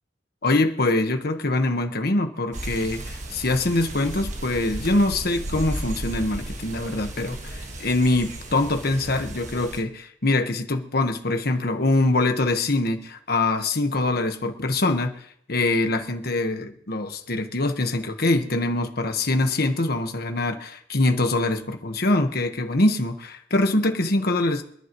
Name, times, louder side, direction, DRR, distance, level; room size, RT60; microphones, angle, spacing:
voice 1, 0.4-15.1 15.5-24.6, left 2 dB, 55° left, 6 dB, 1.4 m, -24 dB
sound 1, 2.5-9.8, right 1 dB, 40° right, 1.6 m, -35 dB
25.5 x 11.0 x 3.1 m, 0.69 s
head